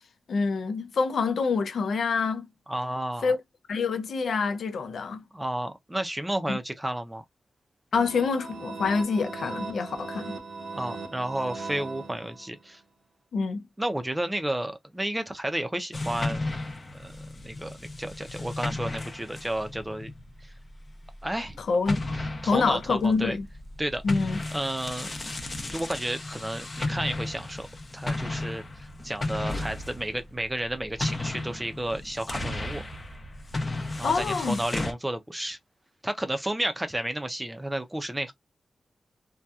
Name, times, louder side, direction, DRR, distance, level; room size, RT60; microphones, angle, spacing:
voice 1, 0.3-2.5 3.2-3.4 3.7-5.2 6.5-6.6 7.9-10.4 13.3-13.6 21.7-22.1 22.4-23.4 24.0-24.4 34.0-34.6, left 4 dB, 85° left, 0.4 m, -26 dB
voice 2, 2.7-3.3 5.3-7.2 10.7-12.8 13.8-16.5 16.9-17.2 17.4-20.1 20.4-20.5 21.2-21.6 22.4-23.4 23.8-24.0 24.5-25.1 25.7-27.7 27.9-32.8 34.0-35.6 36.0-38.3, right 1 dB, 10° right, 0.5 m, -32 dB
sound 1, 7.9-12.7, right 3 dB, 70° right, 0.8 m, -39 dB
sound 2, 15.9-21.5 21.9-34.9, left 2 dB, 30° left, 0.7 m, -34 dB
2.8 x 2.2 x 2.2 m
wide cardioid pair, 115°, 0 cm